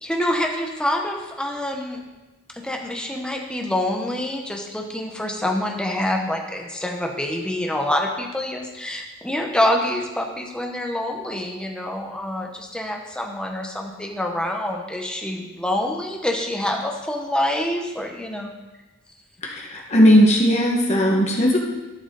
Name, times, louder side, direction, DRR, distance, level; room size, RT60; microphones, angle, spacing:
voice 1, 0.0-2.0 2.5-18.5, left 1 dB, 5° left, 1 dB, 1.0 m, -26 dB
voice 2, 19.4-21.6, equal, 30° left, -1 dB, 1.6 m, -17 dB
12.5 x 6.1 x 4.1 m, 1.1 s
head